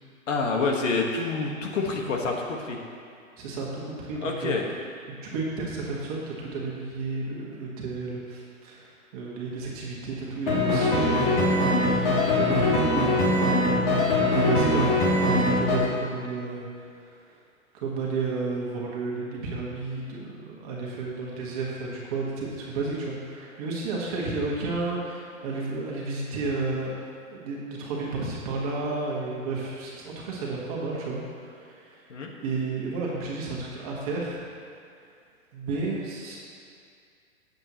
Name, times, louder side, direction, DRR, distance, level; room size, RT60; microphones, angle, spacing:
voice 1, 0.3-2.8 4.2-4.6 32.1-32.3, left 4 dB, 60° left, 1 dB, 1.7 m, -27 dB
voice 2, 3.4-4.5 5.2-8.9 9.1-13.3 13.9-16.7 17.7-26.9 27.3-32.0 32.4-34.4 35.5-36.4, right 3 dB, 25° right, -4 dB, 1.7 m, -32 dB
sound 1, 10.5-15.8, left 2 dB, 40° left, 2.7 m, -22 dB
18.0 x 8.0 x 3.1 m, 2.3 s
hypercardioid pair, 165°, 42 cm